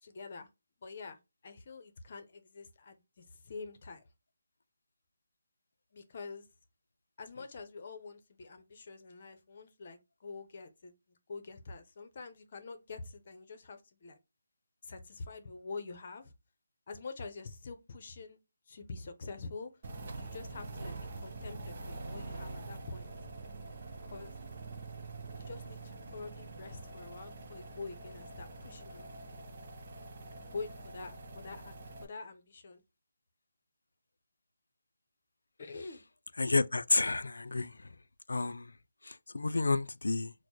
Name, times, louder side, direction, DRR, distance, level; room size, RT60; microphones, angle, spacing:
voice 1, 0.0-0.5 0.8-4.0 5.9-6.5 7.2-14.2 14.8-16.3 16.9-18.4 18.7-19.7 20.1-23.3 24.1-24.3 25.3-29.1 30.5-31.7 32.0-32.8 35.6-36.0, left 4 dB, 45° left, 0.7 m, -46 dB
sound 1, 19.8-32.0, right 3 dB, 45° right, 0.7 m, -45 dB
voice 2, 36.4-37.9 38.3-38.7 39.0-40.3, left 3 dB, 90° left, 0.3 m, -30 dB
4.2 x 2.1 x 3.0 m
hypercardioid pair, 165°, 0 cm